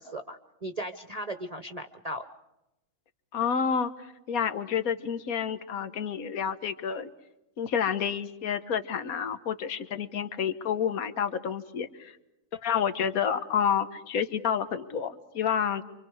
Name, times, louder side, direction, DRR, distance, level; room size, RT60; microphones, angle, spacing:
voice 1, 0.0-2.3, right 1 dB, 30° right, 7 dB, 0.9 m, -37 dB
voice 2, 3.3-3.9 4.3-7.1 7.6-12.2 12.6-15.8, left 7 dB, 70° left, 10 dB, 1.6 m, -29 dB
29.0 x 25.5 x 4.9 m, 0.94 s
omnidirectional pair, 1.6 m